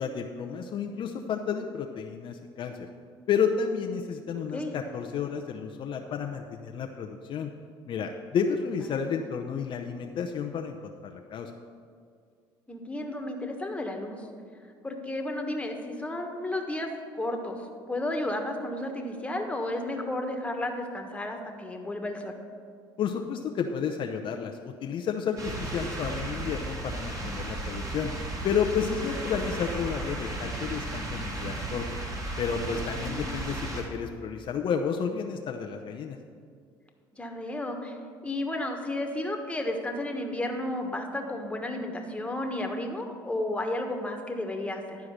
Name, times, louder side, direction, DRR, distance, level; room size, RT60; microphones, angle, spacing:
voice 1, 0.0-2.9 3.3-7.5 7.9-11.5 23.0-28.1 28.4-32.0 32.4-36.2, left 6 dB, 55° left, 3 dB, 0.6 m, -31 dB
voice 2, 12.7-14.2 14.8-16.9 17.1-17.6 17.9-22.4 32.9-33.3 37.1-37.9 38.2-45.0, left 1 dB, 10° left, 3 dB, 1.4 m, -32 dB
sound 1, 25.4-33.8, right 2 dB, 35° right, 2.1 m, -34 dB
11.5 x 4.7 x 6.5 m, 2.2 s
supercardioid pair, 75°, 10 cm